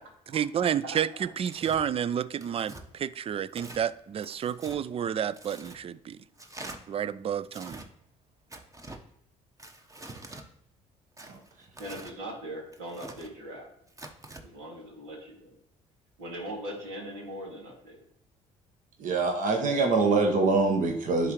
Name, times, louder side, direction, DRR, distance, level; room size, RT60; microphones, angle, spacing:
voice 1, 0.3-6.2 6.9-7.8, right 9 dB, 40° right, 18 dB, 0.4 m, -30 dB
Tearing, 1.4-1.8 2.4-2.8 3.5-3.8 4.2-4.8 5.3-5.8 6.4-6.8 7.5-7.9 8.5-9.0 9.6-10.5 11.2-12.2 12.7-13.3 13.9-14.4, right 2 dB, 20° right, 1.1 m, -45 dB
voice 2, 11.8-13.7 14.4-15.1 16.2-18.0, right 1 dB, 90° right, -3 dB, 2.4 m, -40 dB
voice 3, 19.0-21.3, right 3 dB, 55° right, 3 dB, 1.3 m, -24 dB
11.0 x 3.8 x 3.1 m, 0.76 s
supercardioid pair, 70°, 16 cm